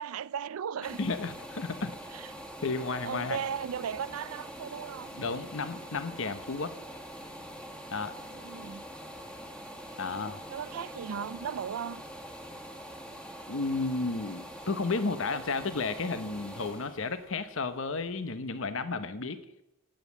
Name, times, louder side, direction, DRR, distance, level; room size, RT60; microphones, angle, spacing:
voice 1, 0.0-1.0 2.1-2.3 3.0-5.2 8.3-8.8 10.5-12.0, right 8 dB, 85° right, 0.4 m, -36 dB
sound 1, 0.8-18.5 19.0-19.1, equal, 5° left, 1.7 m, -44 dB
voice 2, 1.0-2.0 2.6-3.4 5.2-6.7 7.9-8.1 10.0-10.4 13.5-19.4, left 3 dB, 65° left, 0.9 m, -32 dB
18.0 x 7.4 x 7.1 m
head